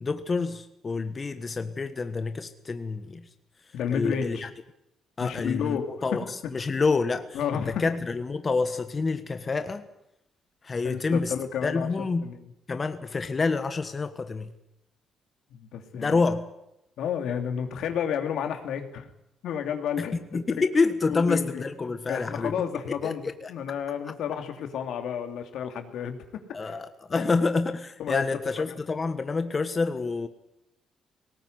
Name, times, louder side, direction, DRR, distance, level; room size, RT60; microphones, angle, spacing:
voice 1, 0.0-3.3 3.9-4.5 5.2-9.9 10.6-11.3 11.6-12.3 12.7-14.5 15.9-16.4 20.0-22.7 23.0-23.5 26.5-30.3, left 4 dB, 35° left, 9 dB, 1.5 m, -28 dB
voice 2, 3.7-4.5 5.2-5.9 7.3-7.8 10.8-11.9 12.2-12.4 15.5-16.2 17.0-19.1 19.4-20.2 21.1-21.6 22.1-26.2 26.6-26.8 27.1-27.3 28.0-28.2, left 8 dB, 80° left, 6 dB, 2.8 m, -31 dB
19.0 x 18.0 x 9.5 m, 0.84 s
cardioid pair, 90°, 0 cm